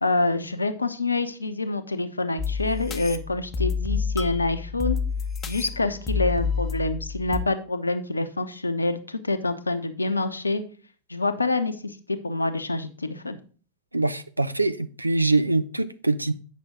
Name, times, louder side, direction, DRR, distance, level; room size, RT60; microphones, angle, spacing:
voice 1, 0.0-5.0 5.5-10.6 11.1-13.4, left 2 dB, 80° left, 0.8 m, -26 dB
sound 1, 2.4-7.4, left 5 dB, 25° left, 0.8 m, -29 dB
voice 2, 13.9-16.3, right 2 dB, 85° right, 0.5 m, -24 dB
8.5 x 6.0 x 3.6 m
figure-of-eight pair, 90°, 0 cm